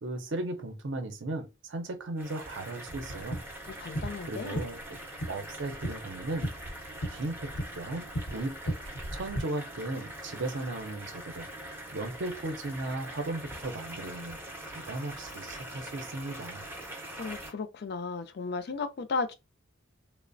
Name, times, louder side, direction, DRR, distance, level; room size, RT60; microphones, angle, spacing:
voice 1, 0.0-3.4 3.8-5.0 5.3-6.5 7.1-8.8 9.1-14.4 14.7-16.6, right 2 dB, 60° right, 0.5 m, -36 dB
sound 1, 2.2-17.5, right 1 dB, 10° right, 0.5 m, -43 dB
sound 2, 2.9-9.4, right 1 dB, 80° left, 0.9 m, -37 dB
voice 2, 3.8-4.6 17.2-19.3, left 4 dB, 50° left, 0.4 m, -34 dB
3.1 x 2.0 x 2.5 m
head